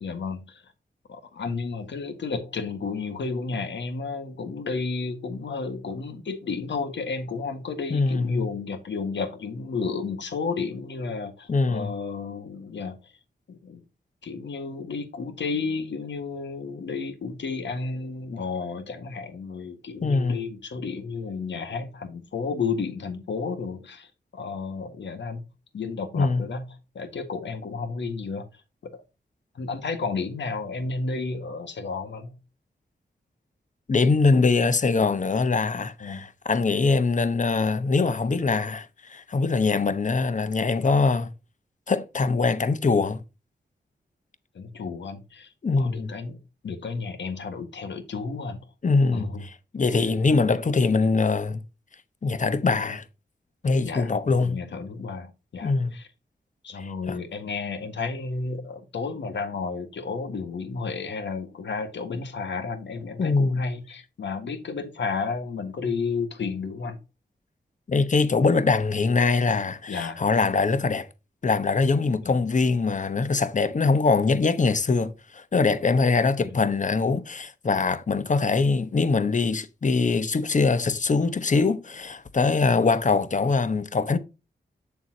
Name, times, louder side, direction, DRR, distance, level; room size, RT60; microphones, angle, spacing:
voice 1, 0.0-0.6 1.1-13.1 13.5-13.8 14.2-25.4 25.7-26.7 27.0-28.5 28.8-29.0 29.6-32.4 36.0-36.2 44.6-46.4 46.6-48.6 49.1-49.4 53.8-56.1 56.6-67.0 69.9-70.2 72.2-72.4 76.4-76.5, left 4 dB, 85° left, 1.7 m, -32 dB
voice 2, 7.9-8.5 11.5-11.9 20.0-20.4 26.1-26.4 33.9-41.3 41.9-43.2 45.6-46.1 48.8-51.6 52.2-53.0 53.6-54.6 55.6-56.0 56.8-57.2 63.2-63.6 67.9-71.1 71.4-84.2, left 4 dB, 45° left, 1.0 m, -23 dB
8.3 x 7.0 x 2.8 m
wide cardioid pair, 85°, 18 cm